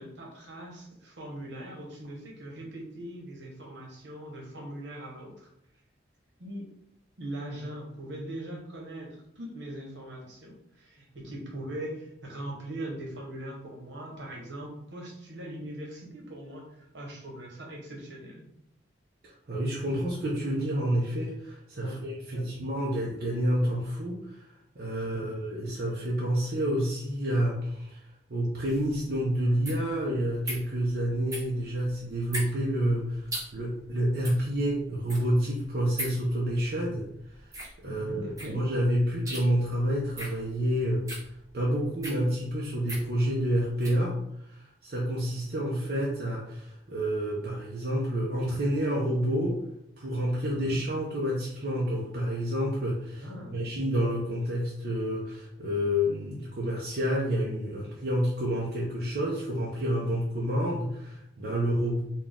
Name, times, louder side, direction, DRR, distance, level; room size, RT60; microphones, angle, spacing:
voice 1, 0.0-5.5 6.4-6.7 7.2-18.5 21.8-22.0 22.3-22.5 25.1-25.3 37.8-38.6 50.5-50.8 53.2-53.6, right 1 dB, 75° right, -1 dB, 1.2 m, -41 dB
voice 2, 19.5-24.5 24.8-28.0 28.3-37.1 37.8-41.1 41.5-44.2 44.5-49.6 50.0-53.2 53.5-62.0, equal, 55° right, -4 dB, 0.7 m, -29 dB
sound 1, 28.6-44.0, right 1 dB, 15° right, 0.8 m, -41 dB
4.2 x 2.3 x 3.6 m, 0.78 s
head